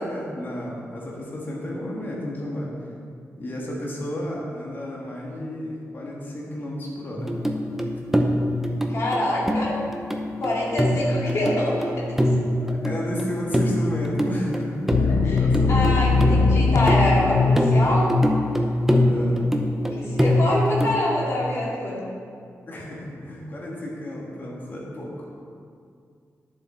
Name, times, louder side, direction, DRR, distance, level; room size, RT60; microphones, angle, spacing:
voice 1, 0.0-2.7 3.4-7.3 12.6-16.2 18.9-19.5 22.7-25.3, left 1 dB, 35° left, -4 dB, 1.5 m, -32 dB
sound 1, 7.2-21.0, equal, 5° right, 0.6 m, -24 dB
voice 2, 8.9-9.8 10.4-12.3 15.2-15.4 15.7-18.1 19.9-22.0, left 1 dB, 55° left, -5 dB, 2.4 m, -25 dB
sound 2, 14.9-19.3 19.6-19.8, left 4 dB, 75° left, 0.4 m, -22 dB
11.0 x 7.3 x 4.3 m, 2.3 s
wide cardioid pair, 170°, 6 cm